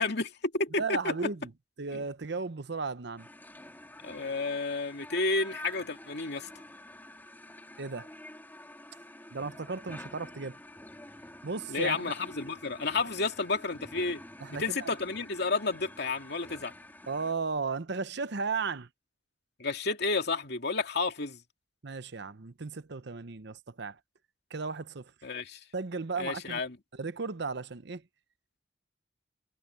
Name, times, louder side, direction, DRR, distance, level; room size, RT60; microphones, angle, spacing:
voice 1, 0.0-1.3 1.9-2.1 4.0-6.5 11.7-14.2 14.5-16.7 19.6-21.4 25.2-25.6 26.2-26.8, left 3 dB, 65° left, 2.6 m, -31 dB
voice 2, 0.8-1.5 1.8-3.3 7.8-8.1 9.3-10.6 11.4-12.0 14.4-14.9 17.1-18.9 21.8-24.0 24.5-25.1 25.7-26.6 26.9-28.0, right 4 dB, 65° right, 0.9 m, -35 dB
sound 1, 3.2-17.3, left 1 dB, 10° left, 2.7 m, -48 dB
head